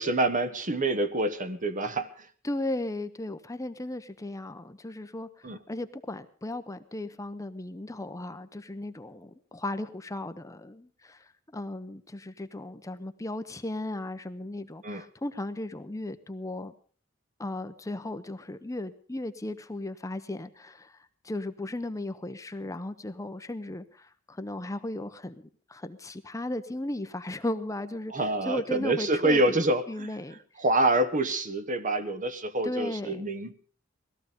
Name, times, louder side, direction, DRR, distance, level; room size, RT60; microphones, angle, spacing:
voice 1, 0.0-2.3 5.4-5.6 14.8-15.0 28.1-30.1 30.6-33.5, right 2 dB, 40° right, 11 dB, 1.2 m, -27 dB
voice 2, 2.4-16.7 17.4-25.3 25.7-29.6 29.9-30.4 32.6-33.3, left 1 dB, 15° left, 10 dB, 0.7 m, -36 dB
19.0 x 14.0 x 5.2 m, 0.43 s
head